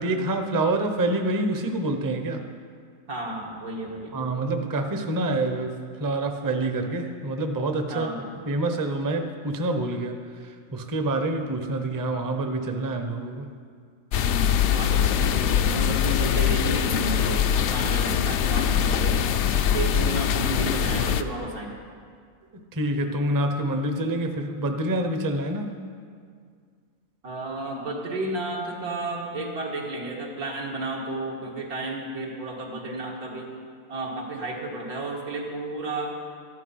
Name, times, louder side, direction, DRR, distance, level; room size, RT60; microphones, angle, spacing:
voice 1, 0.0-2.4 4.1-8.1 8.4-13.5 19.8-19.9 22.7-25.8, right 2 dB, 20° right, 5 dB, 0.6 m, -27 dB
voice 2, 3.1-4.1 7.9-8.3 14.1-19.3 19.7-21.8 27.2-33.5 33.9-36.2, right 2 dB, 80° right, -2 dB, 2.4 m, -32 dB
sound 1, 14.1-21.2, left 8 dB, 65° left, 0.7 m, -23 dB
13.0 x 11.0 x 5.6 m, 2.1 s
omnidirectional pair, 1.5 m